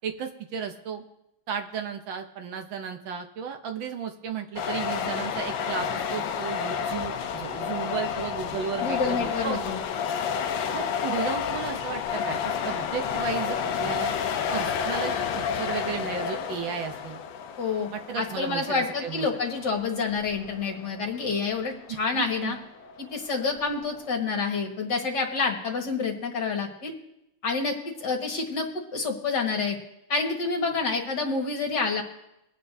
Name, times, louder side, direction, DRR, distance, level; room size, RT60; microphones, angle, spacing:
voice 1, 0.0-1.0 1.5-9.6 10.7-14.1 14.5-17.2 17.9-19.3 22.1-22.6, right 7 dB, 70° right, 5 dB, 1.5 m, -34 dB
sound 1, 4.6-24.2, left 7 dB, 70° left, 1.3 m, -31 dB
voice 2, 8.8-9.8 17.6-17.9 18.2-22.6 23.0-26.9 27.4-29.8 30.1-32.0, left 4 dB, 55° left, 1 dB, 2.1 m, -28 dB
23.0 x 8.9 x 2.7 m, 0.87 s
omnidirectional pair, 2.3 m